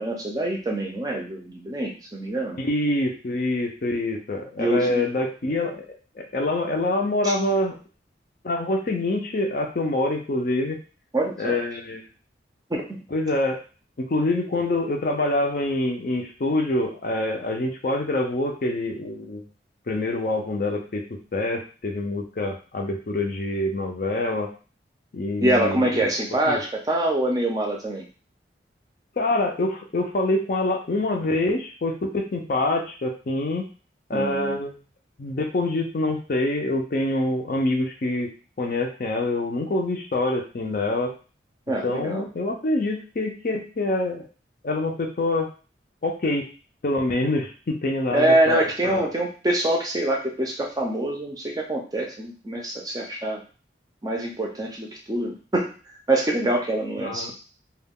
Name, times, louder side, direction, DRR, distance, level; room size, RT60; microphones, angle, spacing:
voice 1, 0.0-2.6 4.6-5.1 7.2-7.3 11.1-11.6 12.7-13.0 25.4-28.1 34.1-34.6 41.7-42.2 48.1-53.4 54.0-55.7 56.1-57.3, right 1 dB, 20° right, 0 dB, 0.5 m, -25 dB
voice 2, 2.6-5.9 6.2-7.8 8.4-10.8 11.4-12.1 13.1-13.6 14.1-19.4 19.9-24.5 25.1-26.1 26.5-26.6 29.2-33.6 34.1-34.8 35.2-38.3 38.6-41.1 41.7-44.2 44.6-45.5 46.0-46.5 46.8-49.1 57.0-57.3, left 2 dB, 50° left, 3 dB, 0.5 m, -25 dB
2.3 x 2.2 x 3.5 m, 0.36 s
head